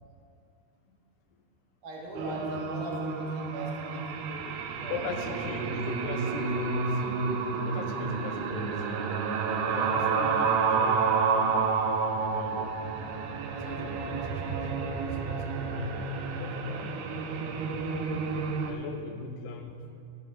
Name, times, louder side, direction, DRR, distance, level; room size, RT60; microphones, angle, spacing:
voice 1, 1.8-4.5 4.8-5.4 5.6-6.0 8.3-8.5, right 1 dB, 60° right, -3 dB, 2.7 m, -40 dB
sound 1, 2.2-18.7, right 5 dB, 80° right, 2.5 m, -30 dB
voice 2, 4.9-7.2 7.6-9.0 9.6-11.8 12.2-12.7 13.5-14.6 14.9-16.1 16.4-17.2 18.7-19.9, left 4 dB, 85° left, 5 dB, 3.0 m, -40 dB
12.5 x 10.5 x 4.8 m, 2.4 s
omnidirectional pair, 4.7 m